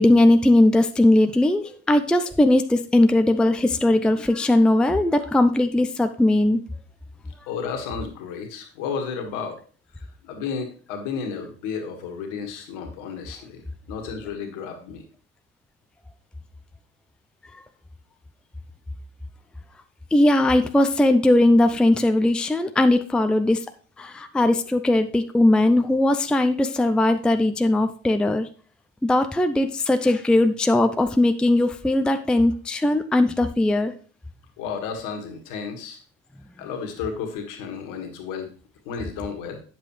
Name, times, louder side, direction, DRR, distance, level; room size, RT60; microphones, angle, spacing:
voice 1, 0.0-6.6 20.1-23.6 24.0-28.5 29.0-33.9, left 1 dB, 5° left, 9 dB, 0.5 m, -19 dB
voice 2, 7.5-9.6 10.0-15.0 34.6-36.0 36.6-38.5 38.9-39.6, left 6 dB, 60° left, 4 dB, 1.9 m, -32 dB
9.1 x 7.5 x 3.2 m, 0.41 s
figure-of-eight pair, 55°, 36 cm